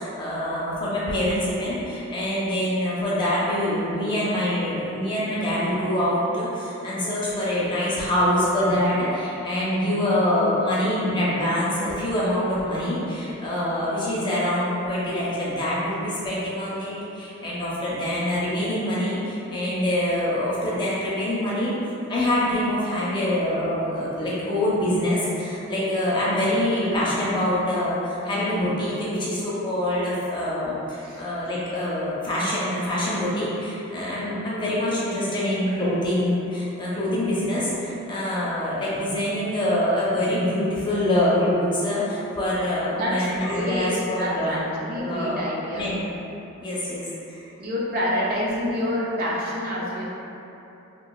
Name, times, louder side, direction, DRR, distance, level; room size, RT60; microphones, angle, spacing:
voice 1, 0.0-21.7 22.1-44.6 45.0-45.4 45.7-46.0 46.6-47.4, left 1 dB, 20° left, -8 dB, 0.4 m, -25 dB
voice 2, 42.9-45.9 47.6-50.1, left 1 dB, 40° right, -5 dB, 0.4 m, -27 dB
2.9 x 2.3 x 2.3 m, 3.0 s
head